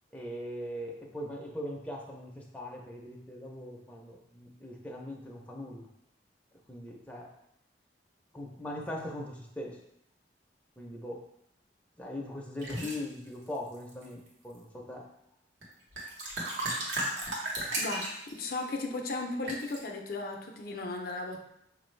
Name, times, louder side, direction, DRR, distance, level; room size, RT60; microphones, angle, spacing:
voice 1, 0.1-5.8 6.7-7.3 8.3-9.8 10.8-11.2 12.0-15.0, left 1 dB, 10° left, -2 dB, 0.5 m, -40 dB
sound 1, 12.6-13.0 13.7-14.3 15.6-15.7 15.9-18.4 19.5-19.8, right 1 dB, 85° right, 1.1 m, -34 dB
voice 2, 17.8-21.4, left 3 dB, 55° left, 2 dB, 0.5 m, -36 dB
5.2 x 2.5 x 3.1 m, 0.78 s
head